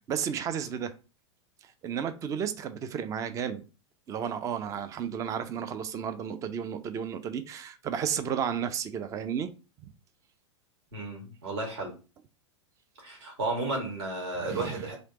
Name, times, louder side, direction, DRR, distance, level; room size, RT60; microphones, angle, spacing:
voice 1, 0.1-0.9 1.6-3.6 4.1-9.5 14.4-14.8, right 8 dB, 20° right, 0.4 m, -33 dB
voice 2, 10.9-11.9 13.0-15.0, right 2 dB, 55° right, 1.7 m, -33 dB
3.3 x 3.0 x 3.9 m
figure-of-eight pair, 95°, 16 cm